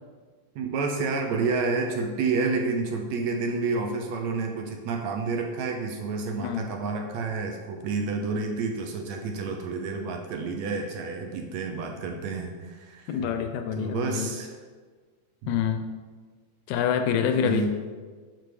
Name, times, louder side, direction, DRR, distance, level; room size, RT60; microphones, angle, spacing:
voice 1, 0.6-13.2 13.8-14.5 15.4-15.6 17.4-17.8, right 4 dB, 80° right, 2 dB, 1.8 m, -29 dB
voice 2, 6.4-6.7 13.1-14.3 15.5-15.9 16.7-17.7, left 8 dB, 80° left, 6 dB, 1.9 m, -26 dB
6.7 x 6.0 x 3.2 m, 1.5 s
omnidirectional pair, 3.5 m